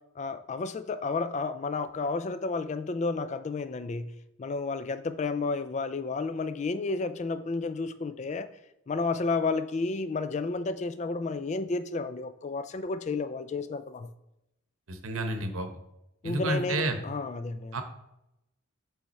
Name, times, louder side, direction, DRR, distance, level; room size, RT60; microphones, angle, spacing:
voice 1, 0.2-4.1 4.4-8.5 8.9-14.1 16.2-17.8, left 3 dB, 35° left, 12 dB, 0.3 m, -31 dB
voice 2, 14.9-15.7 16.2-17.0 17.7-17.8, right 2 dB, 80° right, 7 dB, 0.9 m, -30 dB
7.6 x 3.5 x 4.1 m, 0.87 s
head